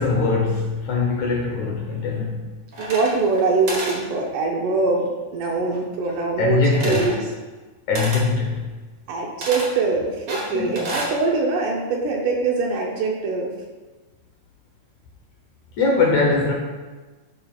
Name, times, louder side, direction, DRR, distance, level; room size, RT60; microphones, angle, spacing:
voice 1, 0.0-2.4 6.4-7.1 7.9-8.6 10.5-10.9 15.8-16.5, left 3 dB, 70° left, -1 dB, 2.0 m, -21 dB
sound 1, 2.7-3.4 3.7-4.0 6.7-7.2 7.9-8.3 9.4-9.7 10.3-11.1, right 1 dB, 50° right, 1.6 m, -29 dB
voice 2, 2.8-7.3 9.1-13.6, right 3 dB, 75° right, 0 dB, 2.1 m, -23 dB
12.0 x 5.5 x 2.4 m, 1.3 s
omnidirectional pair, 4.1 m